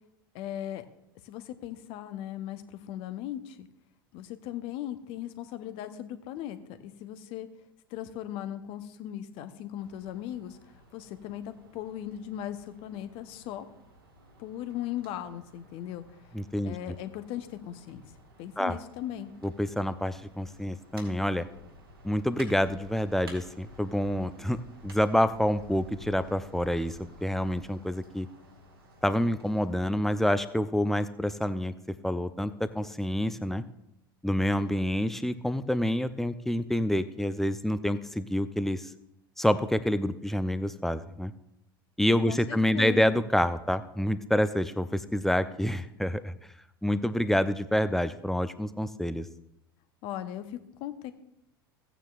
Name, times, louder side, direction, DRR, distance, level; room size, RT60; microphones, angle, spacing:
voice 1, 0.3-0.9 1.2-3.7 4.1-6.6 6.8-7.5 7.9-10.6 10.9-13.7 14.4-16.0 16.6-18.0 18.4-19.3 42.3-43.2 50.0-51.1, left 11 dB, 50° left, 10 dB, 0.9 m, -38 dB
sound 1, 9.8-29.7, equal, 80° right, 2.4 m, -53 dB
voice 2, 16.3-16.7 18.6-18.8 19.4-21.5 22.0-28.3 29.0-31.7 32.0-33.6 34.2-38.9 39.4-41.3 42.0-46.3 46.8-49.3, equal, 5° left, 12 dB, 0.6 m, -27 dB
16.0 x 9.1 x 2.5 m, 0.83 s
figure-of-eight pair, 75°, 12 cm